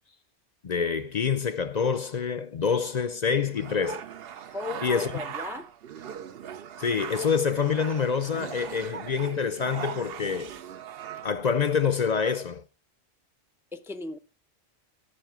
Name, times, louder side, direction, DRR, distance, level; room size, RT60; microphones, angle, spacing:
voice 1, 0.6-4.0 4.8-5.1 6.8-10.5 11.2-12.6, left 6 dB, 45° left, 0.6 m, -26 dB
sound 1, 3.3-11.3, right 8 dB, 60° right, 0.8 m, -40 dB
voice 2, 4.5-5.7 13.7-14.2, left 3 dB, 5° right, 0.4 m, -36 dB
13.5 x 5.6 x 6.1 m
omnidirectional pair, 1.2 m